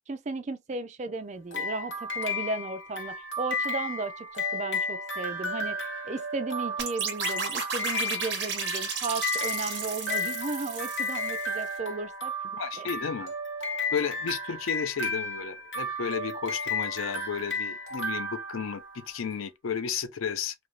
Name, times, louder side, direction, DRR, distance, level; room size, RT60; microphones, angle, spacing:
voice 1, 0.1-12.3 12.8-12.9, right 3 dB, 35° right, 0.4 m, -35 dB
sound 1, 1.5-19.2, left 2 dB, 65° left, 1.1 m, -33 dB
sound 2, 6.8-11.6, right 6 dB, 55° right, 0.8 m, -34 dB
voice 2, 12.5-13.3 13.9-20.5, left 7 dB, 90° left, 0.5 m, -33 dB
2.6 x 2.4 x 2.9 m
head